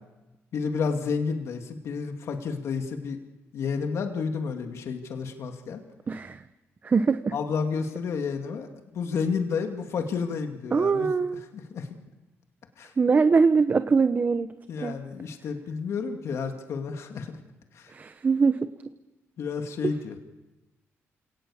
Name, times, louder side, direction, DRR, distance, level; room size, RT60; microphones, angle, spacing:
voice 1, 0.5-3.2 3.5-5.8 7.3-8.7 8.9-11.1 11.5-11.9 12.8-12.9 14.7-17.4 17.7-17.9 19.4-20.2, left 5 dB, 70° left, 4 dB, 2.4 m, -30 dB
voice 2, 6.1-6.4 6.8-7.3 10.7-11.4 13.0-14.5 14.8-15.0 17.9-18.7 19.8-19.9, right 5 dB, 35° right, 11 dB, 0.9 m, -22 dB
29.0 x 18.5 x 7.2 m, 1.1 s
cardioid pair, 100°, 5 cm